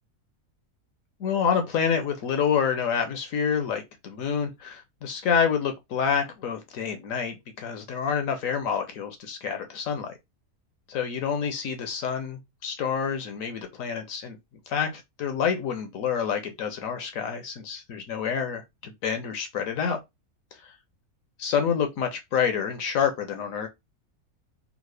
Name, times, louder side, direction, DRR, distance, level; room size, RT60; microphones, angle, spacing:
voice 1, 1.2-10.1 10.9-14.4 14.7-20.0 21.4-23.7, left 7 dB, 70° left, 1.0 m, -28 dB
3.6 x 2.1 x 3.2 m
omnidirectional pair, 1.6 m